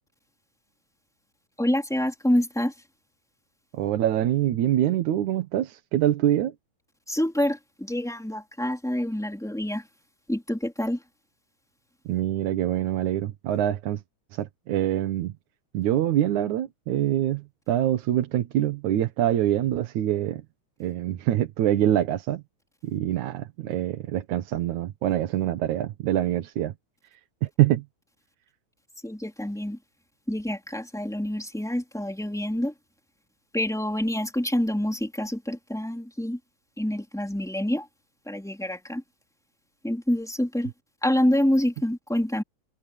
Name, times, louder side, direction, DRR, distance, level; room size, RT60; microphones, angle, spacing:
voice 1, 1.6-2.7 7.1-9.9 10.3-11.0 29.0-29.8 30.3-32.7 33.5-36.4 36.8-37.9 38.3-39.0 39.8-40.7 41.0-42.4, left 1 dB, ahead, 3.5 m, -27 dB
voice 2, 3.7-6.5 12.1-14.0 14.3-15.3 15.7-20.4 20.8-22.4 22.8-26.7 27.4-27.8, right 12 dB, 80° right, 2.6 m, -25 dB
omnidirectional pair, 3.3 m